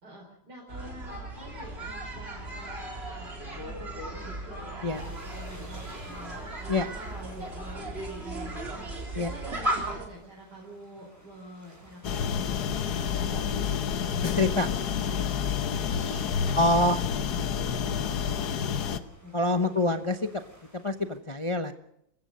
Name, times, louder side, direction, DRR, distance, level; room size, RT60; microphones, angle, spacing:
voice 1, 0.0-3.3 3.6-14.7 15.0-15.4 15.7-19.8, equal, 55° right, -2 dB, 5.1 m, -47 dB
sound 1, 0.7-10.0, right 1 dB, 30° right, 3.9 m, -36 dB
sound 2, 4.9-21.2, equal, 10° right, 6.7 m, -56 dB
sound 3, 12.0-19.0, left 7 dB, 60° left, 1.5 m, -29 dB
voice 2, 14.2-14.7 16.6-17.0 19.3-20.4 20.7-21.7, left 2 dB, 45° left, 7 dB, 0.4 m, -25 dB
27.0 x 15.5 x 6.4 m, 0.76 s
omnidirectional pair, 2.0 m